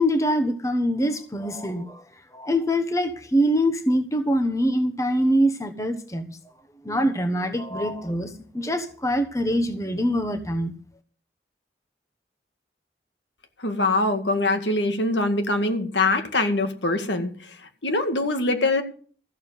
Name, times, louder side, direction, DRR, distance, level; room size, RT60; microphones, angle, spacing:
voice 1, 0.0-2.0 2.3-6.4 6.8-10.7, equal, 20° left, 7 dB, 1.1 m, -24 dB
voice 2, 13.6-17.3 17.8-18.8, left 2 dB, 90° left, 7 dB, 2.0 m, -23 dB
14.5 x 7.2 x 8.1 m, 0.43 s
head